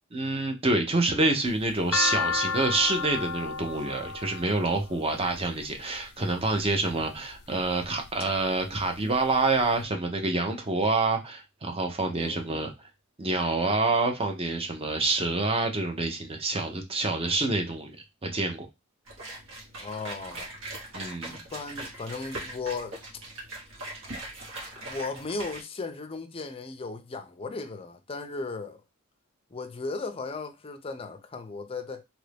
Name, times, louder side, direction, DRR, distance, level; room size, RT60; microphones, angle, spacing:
voice 1, 0.1-12.7 13.2-18.0 18.2-18.7 20.9-21.4, right 3 dB, 25° right, 0.6 m, -27 dB
sound 1, 1.5-5.7 6.5-7.0 7.6-8.3 8.6-8.7 8.9-9.7, left 5 dB, 80° left, 0.4 m, -31 dB
voice 2, 12.2-12.7 19.8-20.5 21.2-23.0 24.8-28.8 29.5-32.0, left 3 dB, 25° left, 0.5 m, -36 dB
sound 2, 19.1-25.6, right 2 dB, 65° right, 1.3 m, -40 dB
3.0 x 2.6 x 3.3 m
head